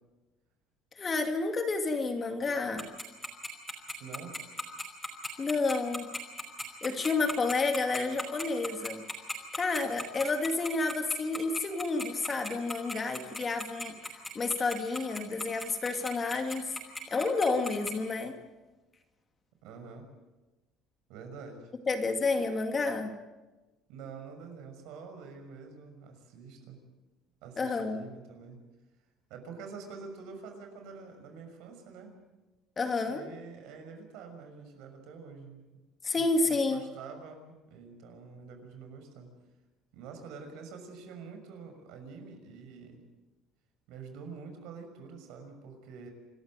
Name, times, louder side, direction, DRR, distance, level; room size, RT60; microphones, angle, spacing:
voice 1, 1.0-2.9 5.4-6.1 6.8-9.0 9.5-13.9 14.3-16.8 17.1-18.4 21.9-23.1 27.6-28.0 32.8-33.2 36.0-36.8, left 3 dB, 25° left, 5 dB, 2.5 m, -30 dB
Tick-tock, 2.8-17.9, left 2 dB, 5° left, 5.3 m, -36 dB
voice 2, 4.0-4.3 19.6-20.1 21.1-21.7 23.9-26.8 27.4-28.6 29.3-32.1 33.0-35.6 36.1-39.3 39.9-43.0 43.9-46.1, right 5 dB, 75° right, 5 dB, 6.2 m, -46 dB
27.5 x 14.0 x 9.2 m, 1.1 s
cardioid pair, 140°, 0 cm